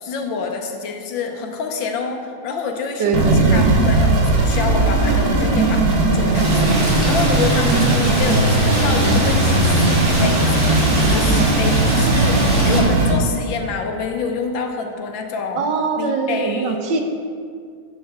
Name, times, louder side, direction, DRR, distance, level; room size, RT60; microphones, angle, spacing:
voice 1, 0.0-3.2 3.5-12.4 12.7-15.7 16.0-16.8, left 5 dB, 70° left, 4 dB, 1.5 m, -27 dB
voice 2, 3.0-3.7 7.7-8.1 11.9-12.9 15.6-17.0, right 4 dB, 65° right, 3 dB, 1.3 m, -24 dB
sound 1, 3.1-13.1, right 2 dB, 90° right, 2.3 m, -17 dB
Rain, 6.3-12.8, right 1 dB, 35° right, 2.8 m, -25 dB
12.5 x 7.6 x 3.6 m, 2.2 s
omnidirectional pair, 2.2 m